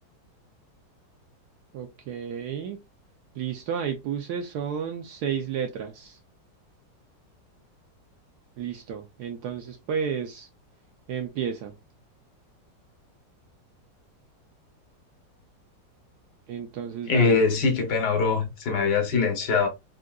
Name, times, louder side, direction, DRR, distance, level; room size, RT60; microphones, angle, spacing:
voice 1, 1.7-2.8 3.3-6.2 8.6-10.5 11.1-11.7 16.5-17.4, right 7 dB, 70° right, 1.0 m, -32 dB
voice 2, 17.1-19.7, left 4 dB, 65° left, 1.4 m, -22 dB
3.7 x 2.6 x 2.2 m
omnidirectional pair, 2.0 m